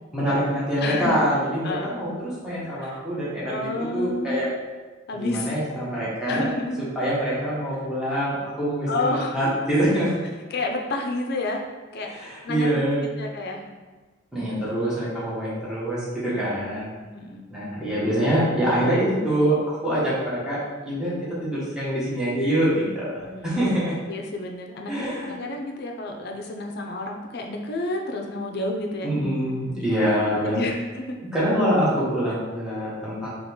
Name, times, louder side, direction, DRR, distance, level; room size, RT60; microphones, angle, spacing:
voice 1, 0.1-4.5 5.1-6.5 6.9-10.2 12.1-13.0 14.3-16.9 17.5-20.6 20.8-21.1 21.4-23.9 24.9-25.3 29.0-30.6 31.3-33.3, equal, 5° right, -10 dB, 1.4 m, -25 dB
voice 2, 0.8-1.2 1.6-1.9 2.6-3.0 3.4-4.5 5.1-5.5 6.2-6.9 8.9-9.5 10.5-11.6 11.9-12.7 13.2-13.7 16.3-17.5 23.2-23.7 24.1-29.1 30.4-31.2, left 2 dB, 55° left, 2 dB, 0.6 m, -30 dB
3.9 x 3.0 x 3.7 m, 1.3 s
head